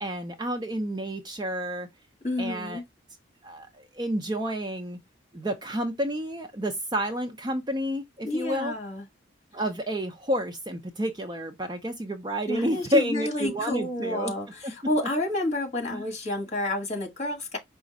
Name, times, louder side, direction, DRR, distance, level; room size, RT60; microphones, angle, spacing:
voice 1, 0.0-1.9 2.4-2.8 3.4-5.0 5.3-8.7 9.5-14.3 14.6-14.7 15.9-16.0, equal, 20° right, 0.5 m, -30 dB
voice 2, 2.2-2.8 8.2-9.0 12.5-17.6, left 1 dB, 35° left, 1.6 m, -30 dB
5.1 x 2.4 x 3.9 m
head